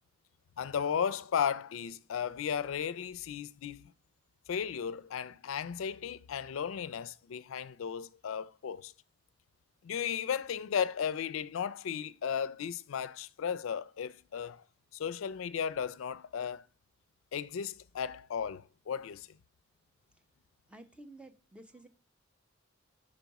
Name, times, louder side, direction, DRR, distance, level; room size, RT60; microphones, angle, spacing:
voice 1, 0.6-3.9 4.5-8.9 9.8-14.6 14.9-16.6 17.3-19.3, left 7 dB, 80° left, 0.4 m, -35 dB
voice 2, 20.7-21.9, right 1 dB, 5° right, 0.5 m, -52 dB
5.4 x 4.0 x 4.6 m
head